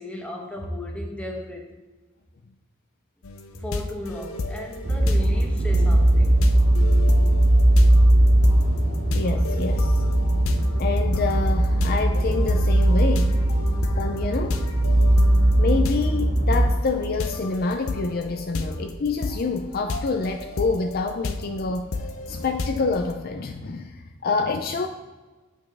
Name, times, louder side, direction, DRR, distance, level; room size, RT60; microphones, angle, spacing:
voice 1, 0.0-1.7 3.5-6.4, left 1 dB, 5° left, 0 dB, 1.0 m, -35 dB
sound 1, 3.2-23.1, left 3 dB, 90° left, 0.6 m, -33 dB
sound 2, 4.8-16.7, right 1 dB, 45° right, 0.9 m, -19 dB
voice 2, 9.1-10.0 10.8-13.4 14.0-14.7 15.6-22.0 22.3-24.9, left 4 dB, 45° left, 6 dB, 0.4 m, -27 dB
8.3 x 5.4 x 3.5 m, 1.2 s
head